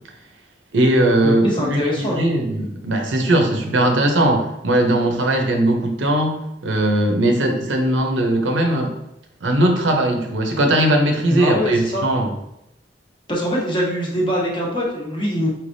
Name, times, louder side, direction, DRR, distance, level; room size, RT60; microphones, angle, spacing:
voice 1, 0.7-9.0 9.4-12.3, right 1 dB, 85° right, 3 dB, 0.7 m, -19 dB
voice 2, 1.2-2.2 11.3-12.1 13.3-15.5, equal, 25° left, -3 dB, 1.0 m, -23 dB
4.5 x 3.3 x 2.6 m, 0.82 s
head